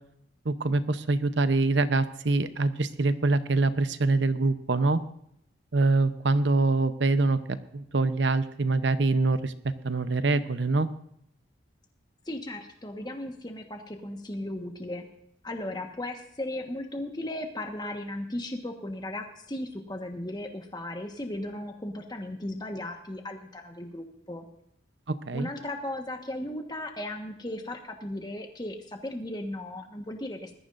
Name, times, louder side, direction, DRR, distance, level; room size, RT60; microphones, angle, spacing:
voice 1, 0.4-5.0 5.7-9.5 9.8-10.9 25.1-25.5, right 3 dB, 65° right, 12 dB, 0.8 m, -25 dB
voice 2, 12.2-15.0 15.4-24.4 25.3-30.6, left 1 dB, 20° left, 4 dB, 1.4 m, -36 dB
20.0 x 14.0 x 2.6 m, 0.72 s
head